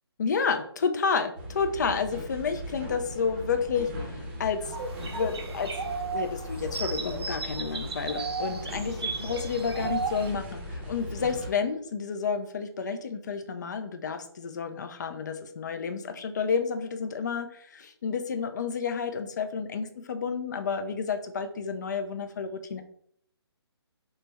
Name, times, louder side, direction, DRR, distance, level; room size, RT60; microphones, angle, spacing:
voice 1, 0.2-4.8 5.1-5.7 6.1-22.8, left 5 dB, 45° left, 7 dB, 0.4 m, -30 dB
sound 1, 1.4-11.5, equal, 25° right, 0.6 m, -39 dB
sound 2, 4.6-10.3, right 4 dB, 70° right, 0.5 m, -35 dB
3.2 x 2.1 x 3.2 m, 0.66 s
hypercardioid pair, 165°, 14 cm